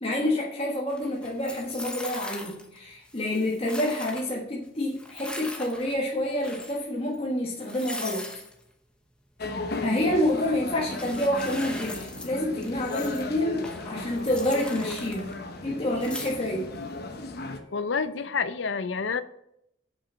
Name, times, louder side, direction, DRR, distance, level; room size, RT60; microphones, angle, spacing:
voice 1, 0.0-8.3 9.8-15.4 15.6-16.7, left 1 dB, 30° left, -3 dB, 1.3 m, -28 dB
sound 1, 0.9-2.8 3.0-4.3 4.8-6.0 6.3-6.8 7.1-7.2 7.6-8.5 9.7-10.5 10.9-12.3 12.6-13.3 13.6-15.6 15.9-16.8, left 1 dB, 5° left, 1.0 m, -41 dB
sound 2, 9.4-17.6, left 3 dB, 55° left, 1.0 m, -36 dB
voice 2, 17.5-19.2, left 5 dB, 75° left, 13 dB, 0.6 m, -30 dB
7.5 x 6.1 x 5.6 m, 0.78 s
head